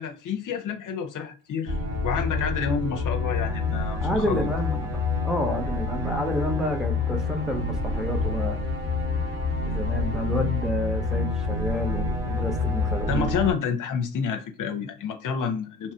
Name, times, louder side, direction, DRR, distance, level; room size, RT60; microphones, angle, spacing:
voice 1, 0.0-1.8 2.0-4.5 13.1-15.9, left 6 dB, 50° left, 0.7 m, -29 dB
sound 1, 1.7-13.5, left 3 dB, 80° right, 1.4 m, -27 dB
voice 2, 4.0-8.6 9.6-13.4, left 1 dB, ahead, 0.8 m, -29 dB
3.0 x 2.4 x 4.2 m
supercardioid pair, 70°, 41 cm